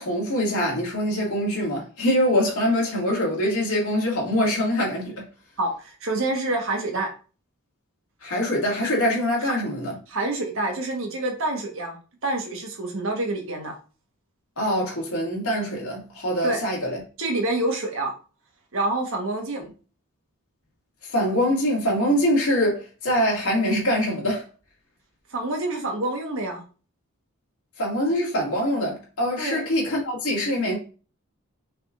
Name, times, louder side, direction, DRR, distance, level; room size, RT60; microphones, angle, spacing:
voice 1, 0.0-5.1 8.2-10.0 14.6-17.0 21.0-24.4 27.8-30.8, equal, 75° left, 2.0 m, -24 dB
voice 2, 5.6-7.1 9.5-9.6 10.1-12.0 12.2-13.8 16.4-16.6 17.2-18.1 18.7-19.6 25.3-26.6 29.4-29.6, right 2 dB, 60° right, 1.2 m, -27 dB
5.6 x 3.7 x 2.4 m
head